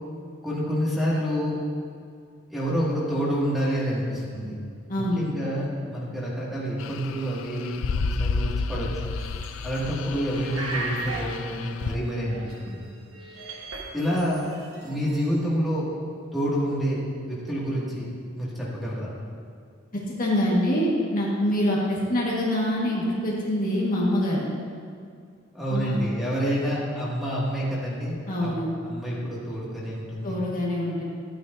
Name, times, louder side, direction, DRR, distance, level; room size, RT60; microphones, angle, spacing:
voice 1, 0.4-1.6 2.5-4.5 5.0-8.9 9.6-13.0 13.9-14.4 14.8-15.9 16.3-17.0 17.3-18.1 18.3-19.1 25.5-28.5 28.8-30.4, equal, ahead, -7 dB, 2.2 m, -28 dB
voice 2, 4.9-5.3 20.2-24.4 25.7-26.0 28.3-28.7 30.2-31.0, left 1 dB, 45° left, -5 dB, 1.6 m, -25 dB
sound 1, 6.8-12.0, left 4 dB, 70° left, 0.3 m, -31 dB
sound 2, 9.2-10.0 10.3-12.9 13.1-15.2, right 2 dB, 85° right, 1.4 m, -37 dB
13.0 x 9.3 x 2.7 m, 2.2 s
head